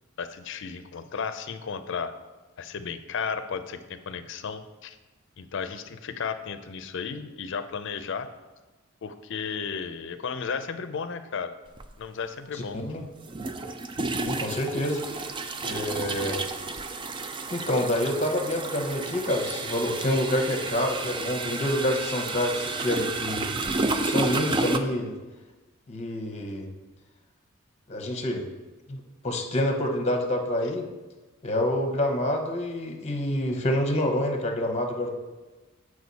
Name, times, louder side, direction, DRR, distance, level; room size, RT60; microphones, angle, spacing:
voice 1, 0.2-2.1 2.6-5.0 5.4-8.3 9.0-11.5 12.0-12.8, left 6 dB, 60° left, 10 dB, 0.5 m, -34 dB
sound 1, 11.8-11.9 13.3-24.8, right 3 dB, 25° right, 0.4 m, -31 dB
voice 2, 12.5-13.0 14.1-15.0 15.6-16.4 17.5-23.5 23.9-25.1 25.9-26.7 27.9-28.5 28.9-30.9 31.4-35.1, left 1 dB, 35° left, 4 dB, 0.9 m, -27 dB
7.9 x 4.9 x 4.1 m, 1.2 s
head